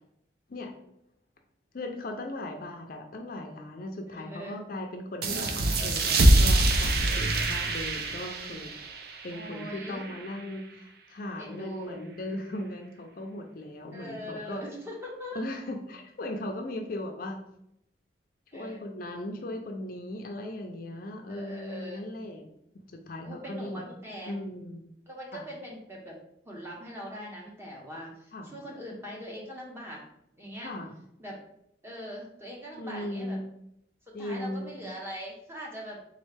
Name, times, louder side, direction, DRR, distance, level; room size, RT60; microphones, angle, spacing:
voice 1, 1.7-8.7 9.2-14.6 15.3-17.4 18.5-22.5 22.9-23.8 24.3-24.8 25.3-25.4 28.3-28.5 30.6-30.9 32.8-33.4 34.1-34.7, left 1 dB, 50° left, 3 dB, 0.5 m, -38 dB
voice 2, 4.1-4.6 9.3-10.0 11.4-11.9 13.9-15.4 18.5-18.8 21.3-22.1 23.3-24.3 25.1-26.1 26.5-30.0 30.4-30.7 31.2-31.4 31.8-33.4 34.2-36.0, equal, 15° right, -3 dB, 0.9 m, -41 dB
sound 1, 5.2-10.4, right 2 dB, 60° right, 0.5 m, -25 dB
3.9 x 3.1 x 3.3 m, 0.77 s
head